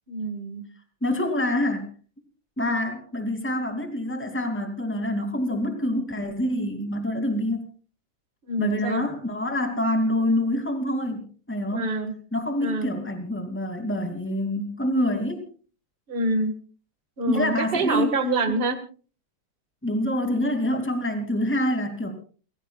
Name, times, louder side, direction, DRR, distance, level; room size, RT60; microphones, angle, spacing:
voice 1, 0.1-0.7 8.5-9.1 11.7-12.2 12.6-12.9 16.1-16.5 17.2-18.8, right 2 dB, 30° right, 8 dB, 1.8 m, -26 dB
voice 2, 1.0-1.9 2.6-7.6 8.6-11.9 12.3-15.4 17.3-18.2 19.8-22.1, left 1 dB, 5° left, 5 dB, 2.6 m, -26 dB
29.0 x 15.5 x 2.4 m, 0.39 s
omnidirectional pair, 2.2 m